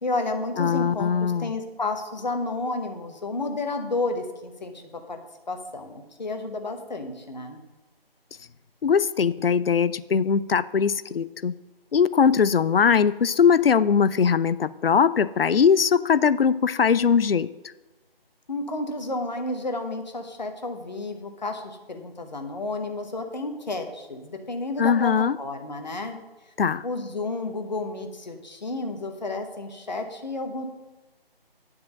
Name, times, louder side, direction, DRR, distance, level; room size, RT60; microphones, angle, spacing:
voice 1, 0.0-5.2 5.5-7.6 18.5-25.1 25.4-26.2 26.5-26.6 26.8-30.7, left 2 dB, 45° left, 6 dB, 1.1 m, -31 dB
voice 2, 0.6-1.5 8.8-11.5 11.9-17.5 24.8-25.4 26.6-26.8, left 6 dB, 70° left, 17 dB, 0.5 m, -21 dB
9.7 x 4.9 x 6.4 m, 1.1 s
figure-of-eight pair, 155°, 30 cm